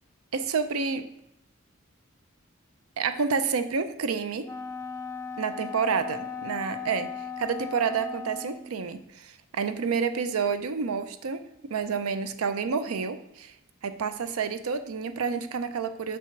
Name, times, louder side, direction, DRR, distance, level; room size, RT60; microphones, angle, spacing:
voice 1, 0.3-1.1 3.0-4.5 5.4-7.1 7.4-11.4 11.7-13.5 13.8-16.2, right 5 dB, 85° right, 11 dB, 0.5 m, -29 dB
Wind instrument woodwind instrument, 4.4-8.7, left 6 dB, 15° left, 0.3 m, -37 dB
6.1 x 3.4 x 5.8 m, 0.82 s
head